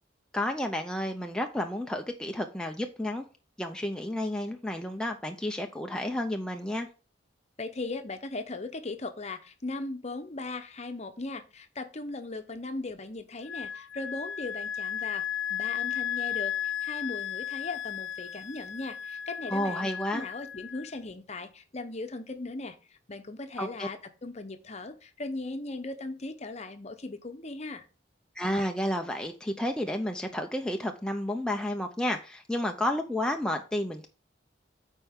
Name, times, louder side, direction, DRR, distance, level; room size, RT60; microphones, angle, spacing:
voice 1, 0.3-3.2 3.6-6.9 19.5-20.3 23.6-23.9 28.4-34.1, left 1 dB, 5° left, 3 dB, 0.5 m, -31 dB
voice 2, 7.6-27.8, left 2 dB, 40° left, 8 dB, 0.8 m, -38 dB
Wind instrument woodwind instrument, 13.5-20.9, left 10 dB, 75° left, 0.3 m, -34 dB
8.8 x 4.5 x 3.6 m, 0.34 s
head